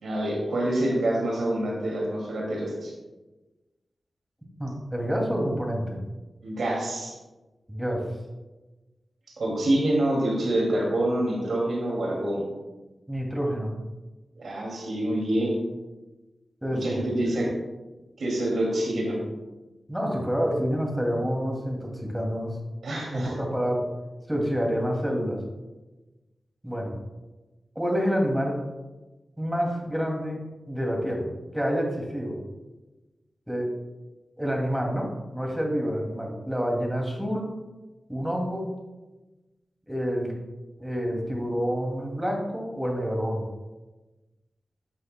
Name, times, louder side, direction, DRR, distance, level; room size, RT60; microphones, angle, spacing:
voice 1, 0.0-2.9 6.4-7.2 9.4-12.5 14.4-15.5 16.7-17.5 18.2-19.2 22.8-23.3, right 1 dB, 85° right, -2 dB, 2.4 m, -26 dB
voice 2, 4.6-6.0 7.7-8.1 13.1-13.7 16.6-17.5 19.9-22.6 23.1-23.8 24.3-25.4 26.6-26.9 27.8-28.6 29.4-30.4 30.7-32.4 33.5-33.7 34.4-37.5 38.1-38.7 39.9-40.3 40.8-43.5, equal, 10° right, 0 dB, 2.4 m, -28 dB
12.0 x 7.7 x 2.2 m, 1.1 s
cardioid pair, 60°, 0 cm